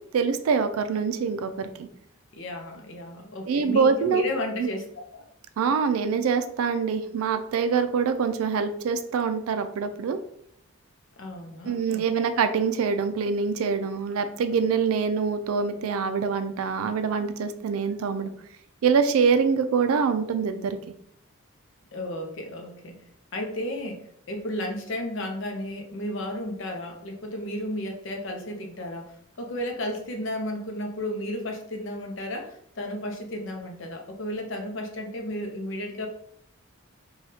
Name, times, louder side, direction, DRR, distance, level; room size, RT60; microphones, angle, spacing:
voice 1, 0.1-1.9 3.5-4.3 4.6-4.7 5.6-10.2 11.6-18.3 18.8-20.8, right 5 dB, 80° right, 9 dB, 0.3 m, -25 dB
voice 2, 2.3-4.9 5.1-5.2 11.2-12.3 21.9-23.0 23.3-36.1, left 1 dB, 60° left, 3 dB, 0.5 m, -33 dB
3.3 x 2.3 x 2.7 m, 0.68 s
head